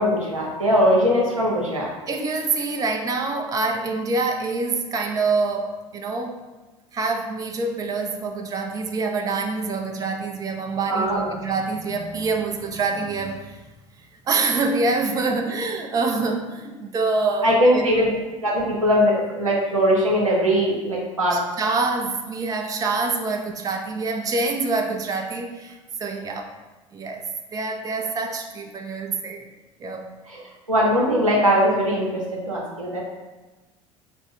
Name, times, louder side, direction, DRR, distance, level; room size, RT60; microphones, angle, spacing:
voice 1, 0.0-1.9 10.9-11.3 15.3-15.4 17.4-18.1 18.4-21.4 30.3-30.4 30.7-33.0, equal, 90° right, -3 dB, 0.7 m, -20 dB
voice 2, 2.1-6.4 6.9-13.6 14.3-18.1 21.3-26.5 26.9-29.5 29.8-30.1, right 3 dB, 20° right, 3 dB, 0.4 m, -26 dB
3.4 x 2.0 x 4.2 m, 1.2 s
figure-of-eight pair, 65°, 17 cm